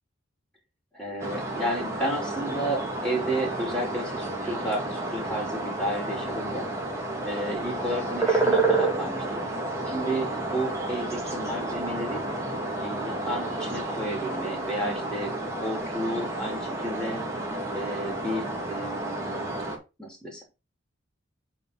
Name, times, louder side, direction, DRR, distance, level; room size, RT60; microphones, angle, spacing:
voice 1, 0.9-6.7 7.2-9.4 9.9-12.2 12.8-17.2 17.7-19.5 20.0-20.4, right 1 dB, 5° left, 0 dB, 2.5 m, -32 dB
sound 1, 1.2-19.8, right 2 dB, 15° right, 1.7 m, -30 dB
7.3 x 3.7 x 5.6 m, 0.28 s
head